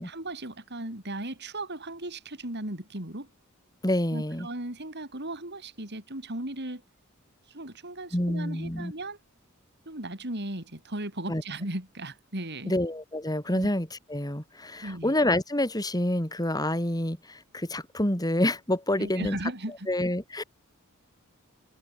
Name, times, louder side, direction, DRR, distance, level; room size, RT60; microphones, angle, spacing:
voice 1, 0.0-3.3 4.1-6.8 7.5-9.2 9.9-12.7 13.5-13.7 14.8-15.1 19.0-19.9, right 1 dB, 50° right, 5.5 m, -36 dB
voice 2, 3.8-4.5 8.1-8.9 11.3-11.4 12.7-19.4 19.9-20.4, left 1 dB, 20° left, 4.1 m, -28 dB
head